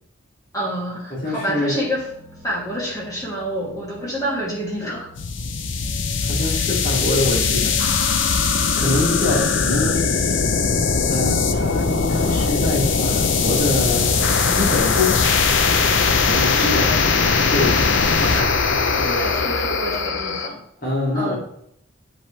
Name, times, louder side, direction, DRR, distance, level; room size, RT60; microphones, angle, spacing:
voice 1, 0.5-2.1 2.4-5.1 9.5-9.6 16.6-17.1 18.2-18.5 18.9-20.6 21.1-21.4, equal, 20° left, -5 dB, 2.7 m, -27 dB
voice 2, 1.1-1.7 6.2-7.8 8.7-10.4 11.1-15.2 16.2-16.9 17.5-17.9 20.8-21.4, left 2 dB, 45° left, -6 dB, 2.9 m, -24 dB
sound 1, 1.4-10.2, equal, 10° right, 1.9 m, -47 dB
sound 2, 5.2-20.5, left 5 dB, 65° left, 0.7 m, -20 dB
8.7 x 5.3 x 3.4 m, 0.71 s
head